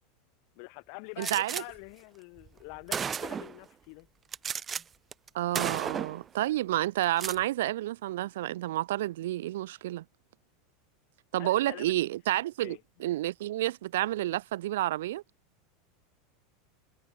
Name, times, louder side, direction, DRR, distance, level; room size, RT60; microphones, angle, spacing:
voice 1, 0.5-4.1 11.4-12.1 12.6-12.8, left 40 dB or more, 60° left, 1.8 m, -46 dB
Gunshot gunfire, 1.2-1.6 2.5-2.6 2.9-3.6 4.3-4.8 5.1-5.3 5.5-6.2 7.0-7.4, right 7 dB, 25° right, 1.0 m, -33 dB
voice 2, 1.2-1.6 5.3-10.0 11.3-15.2, right 15 dB, 80° right, 0.7 m, -30 dB
hypercardioid pair, 110°, 0 cm